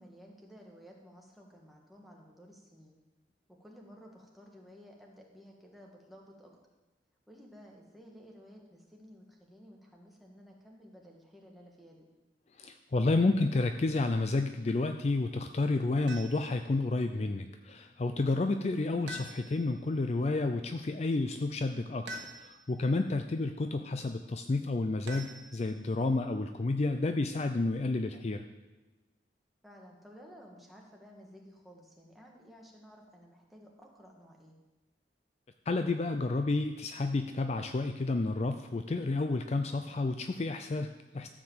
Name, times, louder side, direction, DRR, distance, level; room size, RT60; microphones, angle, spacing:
voice 1, 0.0-2.9 3.5-6.5 7.3-12.1 29.6-34.5, equal, ahead, -1 dB, 1.5 m, -54 dB
voice 2, 12.6-28.4 35.7-41.3, left 2 dB, 35° left, 7 dB, 0.4 m, -30 dB
sound 1, 16.1-16.6 19.1-19.8 22.1-22.8 25.1-25.9, right 1 dB, 90° right, 1.3 m, -45 dB
13.0 x 4.9 x 7.3 m, 1.1 s
head